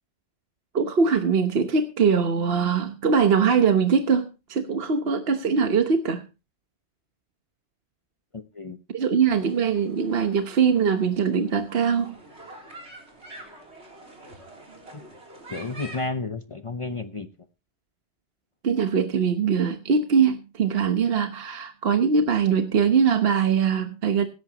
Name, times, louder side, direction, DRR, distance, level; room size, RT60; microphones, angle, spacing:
voice 1, 0.7-6.2 8.9-12.1 18.6-24.2, right 6 dB, 65° right, 7 dB, 1.3 m, -22 dB
voice 2, 8.3-8.8 14.9-15.0 15.5-17.3, left 3 dB, 30° left, 9 dB, 0.9 m, -32 dB
sound 1, 9.3-16.1, right 1 dB, 80° right, 3.6 m, -46 dB
17.0 x 13.0 x 2.9 m, 0.31 s
omnidirectional pair, 1.1 m